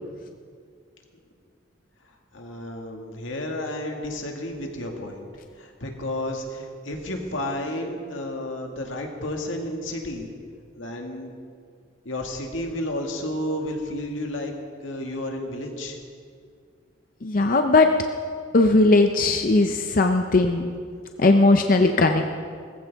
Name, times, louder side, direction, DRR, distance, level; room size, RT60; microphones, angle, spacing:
voice 1, 2.3-5.2 5.6-10.3 10.7-11.3 12.0-14.5 14.8-16.0, left 1 dB, 85° left, 2 dB, 2.0 m, -31 dB
voice 2, 17.2-17.9 18.5-20.7 21.2-22.3, left 2 dB, 45° left, 5 dB, 0.6 m, -18 dB
18.5 x 15.0 x 3.6 m, 2.1 s
head